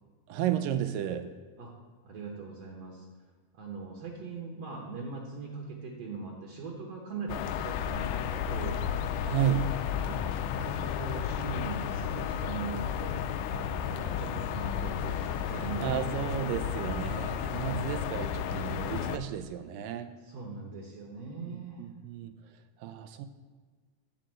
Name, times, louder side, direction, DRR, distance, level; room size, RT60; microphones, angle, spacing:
voice 1, 0.3-1.3 9.3-9.8 14.0-14.6 15.5-20.1 21.5-22.3 22.8-23.3, right 10 dB, 85° right, 8 dB, 2.3 m, -33 dB
voice 2, 2.0-3.1 3.5-8.8 9.9-16.5 17.5-17.9 20.3-21.8, right 4 dB, 60° right, -1 dB, 1.8 m, -41 dB
sound 1, 7.3-19.2, left 8 dB, 80° left, 1.9 m, -33 dB
10.5 x 3.8 x 7.6 m, 1.5 s
omnidirectional pair, 4.0 m